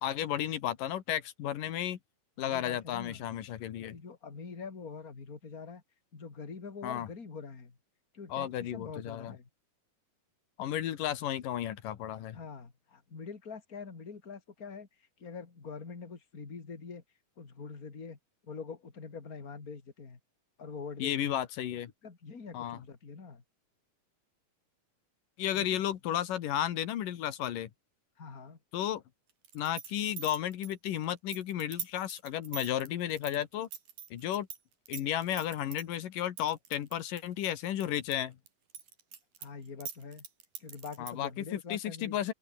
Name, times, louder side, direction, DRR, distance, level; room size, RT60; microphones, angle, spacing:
voice 1, 0.0-2.0 2.4-4.0 6.8-7.1 8.3-9.3 10.6-12.4 21.0-21.9 22.5-22.8 25.4-27.7 28.7-29.0 29.5-33.7 34.1-34.5 34.9-38.4 41.0-42.3, left 11 dB, 90° left, 3.3 m, -33 dB
voice 2, 2.4-3.2 3.8-5.8 6.1-7.8 8.1-9.5 12.3-14.9 15.2-17.0 17.4-20.2 20.6-21.4 22.0-23.4 25.5-25.8 28.2-28.6 39.4-40.3 40.6-42.2, left 5 dB, 25° left, 3.1 m, -44 dB
sound 1, 29.4-34.6 34.9-35.8 36.4-38.2 38.5-41.3, right 8 dB, 85° right, 4.6 m, -43 dB
open air
omnidirectional pair, 3.7 m